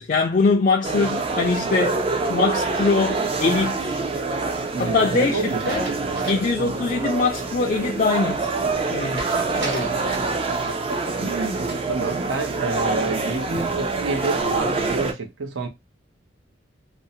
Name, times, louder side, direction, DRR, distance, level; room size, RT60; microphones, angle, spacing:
voice 1, 0.0-2.0 2.3-3.9 4.8-5.9 6.2-8.5 8.9-9.3 9.6-10.0, left 4 dB, 40° left, 0.4 m, -22 dB
sound 1, 0.8-15.1, right 3 dB, 30° right, 0.3 m, -26 dB
sound 2, 2.2-3.2 5.4-6.6 7.0-7.1 9.1-10.4 11.4-12.6 13.1-13.7, right 2 dB, 60° right, 1.1 m, -38 dB
voice 2, 4.7-6.3 9.5-10.0 10.5-15.7, right 3 dB, 90° right, 0.7 m, -29 dB
2.6 x 2.0 x 2.6 m
head